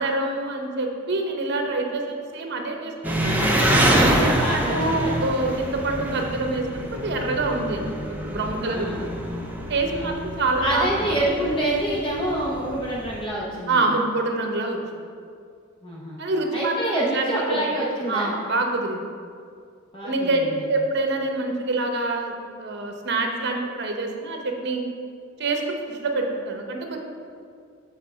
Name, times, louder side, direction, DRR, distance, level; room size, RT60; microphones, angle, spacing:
voice 1, 0.0-3.3 4.0-9.1 9.7-11.1 13.7-15.0 16.2-17.6 18.1-19.0 20.0-20.4 20.7-24.8 25.4-27.0, right 2 dB, 55° right, 3 dB, 0.9 m, -26 dB
Engine, 3.0-13.2, equal, 10° right, 0.7 m, -26 dB
voice 2, 3.8-5.1 8.7-9.0 9.9-10.2 10.6-14.0 15.8-16.2 16.5-18.3 19.9-20.7, right 1 dB, 25° left, -5 dB, 0.9 m, -27 dB
7.6 x 3.7 x 5.5 m, 2.2 s
head